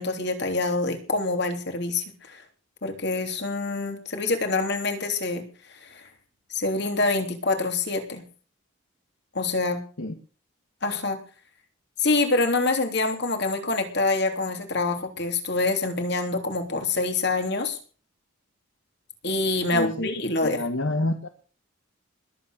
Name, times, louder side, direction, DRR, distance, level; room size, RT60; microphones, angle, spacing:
voice 1, 0.0-2.4 2.8-5.4 5.8-6.1 6.5-8.2 9.3-9.8 10.8-11.2 12.0-17.8 19.2-20.6, left 3 dB, 55° left, 3.2 m, -26 dB
voice 2, 19.7-20.1 20.4-21.3, left 1 dB, 70° left, 1.6 m, -28 dB
20.5 x 8.7 x 6.7 m
head